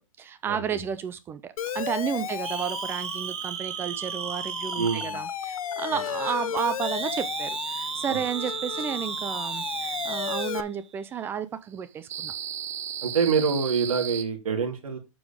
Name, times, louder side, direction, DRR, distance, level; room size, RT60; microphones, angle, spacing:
voice 1, 0.2-12.3, right 8 dB, 15° right, 0.5 m, -32 dB
Siren, 1.6-10.6, left 9 dB, 80° left, 0.8 m, -34 dB
sound 1, 2.4-5.2 6.8-10.5 12.1-14.2, right 9 dB, 60° right, 1.4 m, -34 dB
voice 2, 4.8-5.2 5.9-6.0 8.1-8.2 13.0-15.0, right 5 dB, 85° right, 3.2 m, -26 dB
7.9 x 6.1 x 3.6 m
hypercardioid pair, 155°, 18 cm